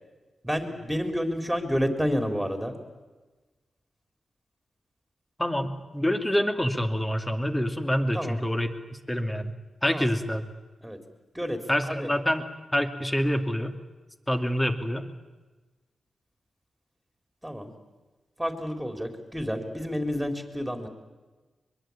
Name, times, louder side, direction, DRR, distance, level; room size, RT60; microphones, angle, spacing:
voice 1, 0.4-2.7 8.1-8.4 9.9-10.1 10.8-11.0 11.3-11.6 11.9-12.1 17.4-17.7 18.4-20.9, equal, 5° right, 6 dB, 3.9 m, -29 dB
voice 2, 5.4-9.5 9.8-10.5 11.7-12.4 12.7-13.7 14.3-15.1, equal, 10° left, 6 dB, 2.5 m, -26 dB
23.0 x 23.0 x 8.8 m, 1.2 s
cardioid pair, 80°, 0 cm